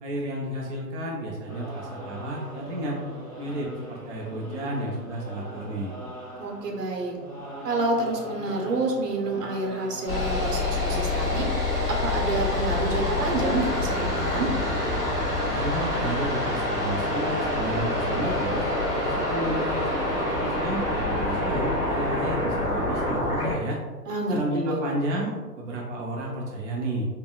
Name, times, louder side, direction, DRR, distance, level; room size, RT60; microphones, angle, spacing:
voice 1, 0.0-3.0 3.4-5.9 15.5-18.7 19.0-23.8 24.3-27.1, right 1 dB, 50° right, -2 dB, 0.5 m, -32 dB
sound 1, 1.5-10.4, right 1 dB, 25° left, 0.4 m, -41 dB
voice 2, 6.4-7.2 7.6-11.5 11.9-14.5 24.1-24.9, right 2 dB, 75° right, 0 dB, 1.0 m, -28 dB
sound 2, 10.1-23.5, left 2 dB, 10° left, 1.2 m, -26 dB
3.8 x 2.1 x 2.3 m, 1.3 s
hypercardioid pair, 150°, 48 cm